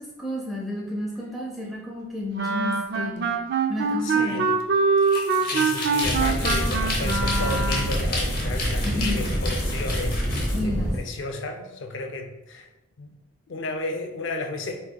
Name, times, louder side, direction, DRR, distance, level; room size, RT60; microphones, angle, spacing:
voice 1, 0.0-3.3 3.7-4.5 8.8-9.4 10.5-11.0, left 1 dB, ahead, -5 dB, 0.7 m, -31 dB
Wind instrument woodwind instrument, 2.4-8.0, right 4 dB, 55° right, 0.3 m, -24 dB
voice 2, 4.0-4.5 5.4-12.7 13.0-13.1 13.5-14.8, left 2 dB, 75° left, 4 dB, 0.4 m, -33 dB
sound 1, 5.0-10.6, left 2 dB, 45° left, 0.8 m, -32 dB
sound 2, 6.0-11.0, equal, 70° right, 0.8 m, -26 dB
4.6 x 2.7 x 2.2 m, 0.98 s
head